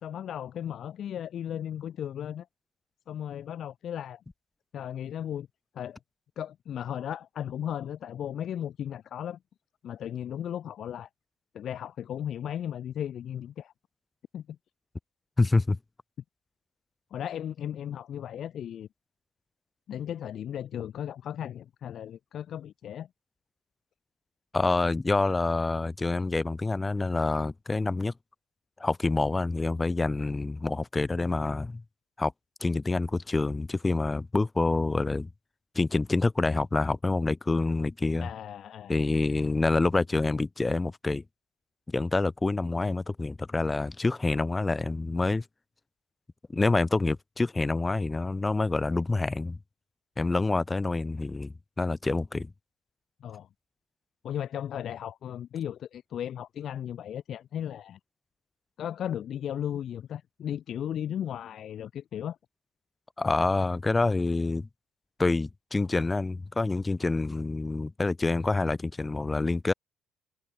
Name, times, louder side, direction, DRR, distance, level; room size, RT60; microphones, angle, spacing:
voice 1, 0.0-2.5 3.1-4.2 4.7-5.5 5.7-6.0 6.4-9.4 9.8-11.1 11.5-13.7 14.3-14.6 17.1-18.9 19.9-23.1 38.2-39.0 53.2-53.5 54.2-58.0 58.8-62.4, left 10 dB, 55° left, 1.6 m, -36 dB
voice 2, 15.4-15.8 24.5-28.1 28.8-31.8 32.2-32.3 32.6-35.3 35.7-38.3 38.9-41.2 41.9-45.4 46.5-49.6 50.2-52.5 63.2-64.7 65.2-69.7, left 3 dB, 15° left, 0.6 m, -27 dB
cardioid pair, 140°, 0 cm